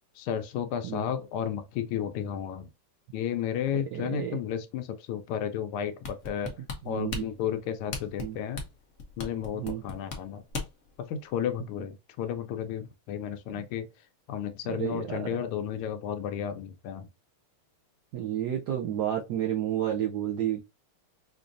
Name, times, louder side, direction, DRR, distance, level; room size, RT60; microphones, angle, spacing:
voice 1, 0.1-2.7 3.1-8.6 9.2-10.4 11.0-13.9 14.3-17.1, left 9 dB, 85° left, 1.5 m, -33 dB
voice 2, 3.7-4.4 6.8-7.2 8.2-8.4 9.5-9.8 13.5-13.6 14.7-15.3 18.1-20.6, right 11 dB, 75° right, 0.9 m, -31 dB
sound 1, 6.0-10.9 11.3-11.4, left 4 dB, 60° left, 0.8 m, -36 dB
5.0 x 2.6 x 2.5 m
omnidirectional pair, 2.4 m